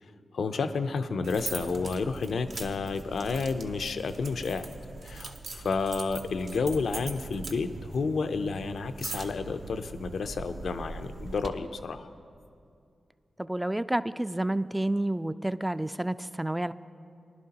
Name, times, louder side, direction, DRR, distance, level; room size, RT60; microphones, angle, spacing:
voice 1, 0.3-4.7 5.0-12.1, left 4 dB, 80° left, 9 dB, 0.5 m, -31 dB
sound 1, 1.2-11.5, right 3 dB, 70° right, 0.7 m, -41 dB
voice 2, 13.4-16.7, right 1 dB, 15° right, 14 dB, 0.3 m, -29 dB
19.0 x 11.0 x 2.9 m, 2.4 s
cardioid pair, 45°, 0 cm